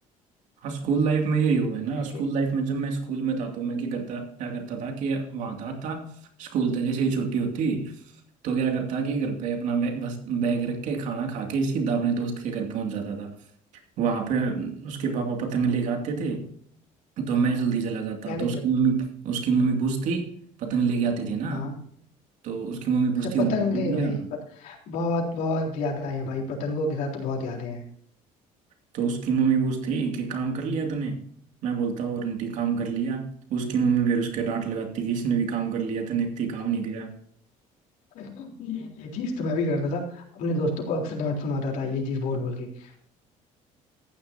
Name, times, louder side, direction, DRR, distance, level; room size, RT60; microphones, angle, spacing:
voice 1, 0.6-6.1 6.4-7.9 8.4-13.3 14.0-16.5 17.2-20.3 20.6-21.7 22.4-24.3 28.9-31.2 31.6-37.1, right 5 dB, 65° right, 2.5 m, -26 dB
voice 2, 18.3-18.6 21.5-21.7 23.4-24.2 24.6-27.8 38.1-43.0, left 2 dB, 70° left, 3.8 m, -29 dB
14.5 x 10.0 x 2.8 m
cardioid pair, 155°, 14 cm